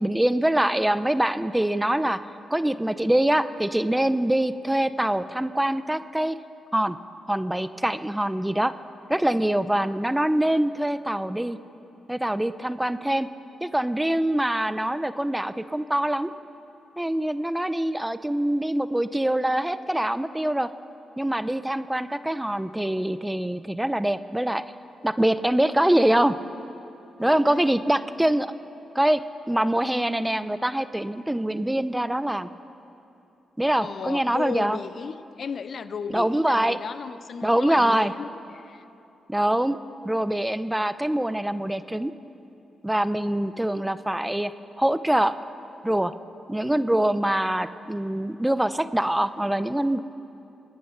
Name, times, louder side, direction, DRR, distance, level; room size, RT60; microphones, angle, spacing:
voice 1, 0.0-2.2 2.5-6.4 6.7-7.0 7.3-8.8 9.1-11.6 12.1-13.3 13.6-16.3 17.0-20.7 21.2-24.6 25.0-26.4 27.2-28.5 28.9-32.5 33.6-34.8 36.1-36.8 37.4-38.1 39.3-39.8 40.0-42.1 42.8-44.5 44.8-45.3 45.8-46.1 46.5-50.0, right 1 dB, 10° right, 14 dB, 0.6 m, -24 dB
voice 2, 27.2-27.7 33.8-38.8, left 6 dB, 60° left, 13 dB, 0.5 m, -35 dB
23.0 x 9.7 x 5.8 m, 2.8 s
supercardioid pair, 55°, 0 cm